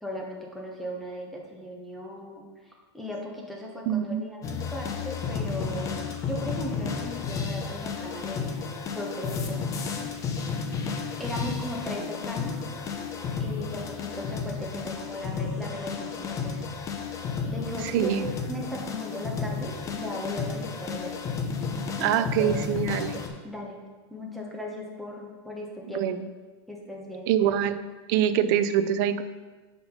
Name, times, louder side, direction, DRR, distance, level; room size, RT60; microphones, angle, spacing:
voice 1, 0.0-2.4 2.9-8.5 8.9-9.6 11.2-12.6 13.4-16.5 17.5-21.1 22.0-22.1 22.4-22.5 23.4-23.8 24.1-26.1 26.7-27.3, left 1 dB, ahead, -2 dB, 1.0 m, -37 dB
voice 2, 3.9-4.2 17.9-18.3 22.0-23.2 25.9-26.3 27.3-27.8 28.1-29.2, right 9 dB, 45° right, 12 dB, 0.4 m, -24 dB
sound 1, 4.4-23.3, left 5 dB, 20° left, 0.7 m, -32 dB
5.6 x 4.2 x 5.6 m, 1.3 s
supercardioid pair, 150°, 14 cm